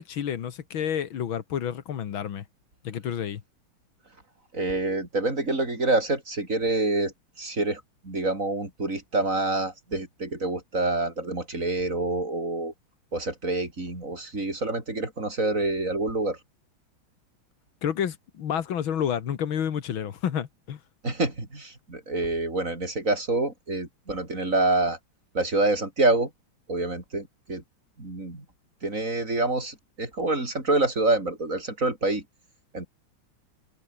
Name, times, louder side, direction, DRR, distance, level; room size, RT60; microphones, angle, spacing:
voice 1, 0.0-2.4 2.8-3.4 17.8-20.8, left 9 dB, 70° left, 2.2 m, -29 dB
voice 2, 4.5-12.7 13.1-16.4 21.0-25.0 25.3-26.3 26.7-27.6 28.0-28.4 28.8-32.2 32.7-32.9, right 2 dB, 35° right, 5.9 m, -27 dB
omnidirectional pair, 2.3 m